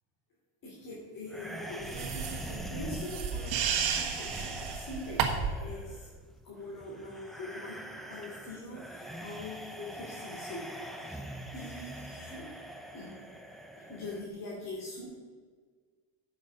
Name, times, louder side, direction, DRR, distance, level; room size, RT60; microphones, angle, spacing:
voice 1, 0.6-6.1 6.4-7.8 8.1-10.6 11.1-11.2 11.5-12.4 12.9-13.2 13.9-15.1, left 2 dB, 45° left, -6 dB, 3.0 m, -43 dB
sound 1, 1.3-14.3, equal, ahead, 0.6 m, -44 dB
sound 2, 1.8-5.6, right 7 dB, 85° right, 1.5 m, -32 dB
8.8 x 6.6 x 6.3 m, 1.5 s
cardioid pair, 145°, 46 cm